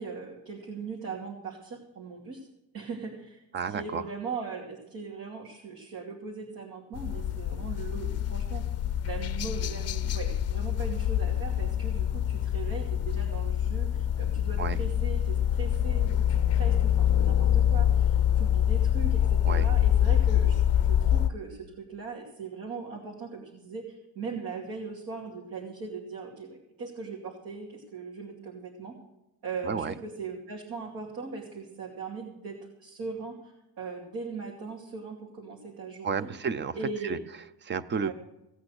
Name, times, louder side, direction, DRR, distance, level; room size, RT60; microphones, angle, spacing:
voice 1, 0.0-2.5 2.7-8.6 9.0-29.0 29.4-36.3 36.7-37.2 38.0-38.1, right 4 dB, 60° right, -1 dB, 2.7 m, -39 dB
voice 2, 3.5-4.0 14.6-14.8 19.4-19.7 29.6-29.9 36.0-36.8 37.0-37.2 37.6-38.1, right 6 dB, 30° right, 16 dB, 0.5 m, -31 dB
sound 1, 7.0-21.3, left 10 dB, 40° left, 0.5 m, -25 dB
17.0 x 8.6 x 6.4 m, 0.94 s
cardioid pair, 160°, 39 cm